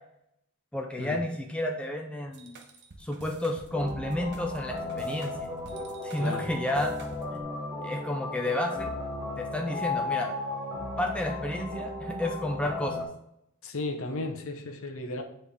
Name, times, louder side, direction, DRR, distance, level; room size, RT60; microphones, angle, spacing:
voice 1, 0.7-2.6 3.0-5.3 6.0-6.9 7.3-7.5 7.8-8.9 9.4-10.3 11.0-13.1, left 1 dB, 5° left, 2 dB, 0.5 m, -31 dB
sound 1, 2.3-7.4, right 2 dB, 50° right, 0.8 m, -48 dB
sound 2, 3.7-13.1, left 2 dB, 15° right, 1.1 m, -35 dB
voice 2, 6.2-6.5 13.6-15.2, left 2 dB, 60° left, 5 dB, 0.8 m, -34 dB
8.6 x 3.3 x 3.3 m, 0.76 s
head